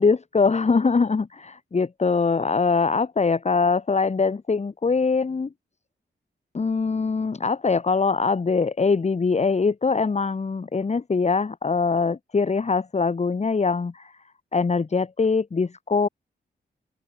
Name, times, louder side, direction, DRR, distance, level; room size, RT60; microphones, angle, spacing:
voice 1, 0.0-5.5 6.5-14.2 14.5-16.1, left 4 dB, 35° left, 1.4 m, -22 dB
open air
wide cardioid pair, 90°, 19 cm